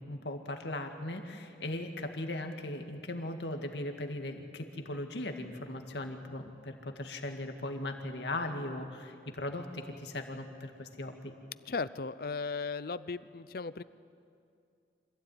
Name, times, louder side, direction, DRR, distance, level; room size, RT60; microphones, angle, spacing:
voice 1, 0.0-11.3, left 1 dB, 80° left, 4 dB, 2.0 m, -38 dB
voice 2, 11.7-13.8, left 4 dB, 55° left, 16 dB, 0.6 m, -36 dB
25.5 x 15.5 x 9.4 m, 2.5 s
head